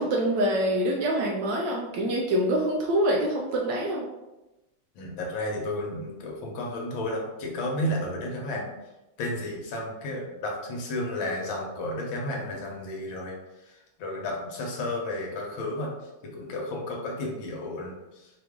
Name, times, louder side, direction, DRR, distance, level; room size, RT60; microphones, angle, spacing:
voice 1, 0.0-4.1, right 1 dB, 70° right, -1 dB, 1.1 m, -25 dB
voice 2, 4.9-8.7 9.2-13.4 13.7-15.9 16.2-18.3, left 1 dB, 70° left, -1 dB, 1.5 m, -32 dB
4.7 x 2.5 x 3.6 m, 1.0 s
omnidirectional pair, 2.3 m